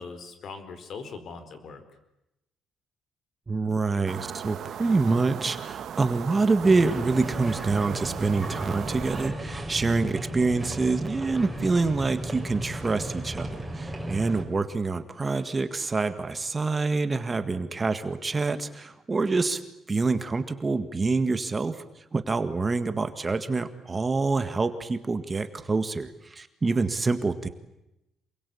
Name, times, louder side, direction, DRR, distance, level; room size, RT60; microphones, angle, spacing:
voice 1, 0.0-1.8 26.6-26.8, left 4 dB, 55° left, 10 dB, 4.6 m, -41 dB
voice 2, 3.5-19.6 19.9-21.8 22.1-27.5, right 3 dB, 25° right, 10 dB, 1.7 m, -26 dB
sound 1, 4.1-9.3, right 9 dB, 60° right, 1.5 m, -38 dB
sound 2, 6.6-14.5, right 1 dB, 5° right, 5.8 m, -35 dB
27.5 x 22.5 x 8.6 m, 0.90 s
cardioid pair, 120°, 0 cm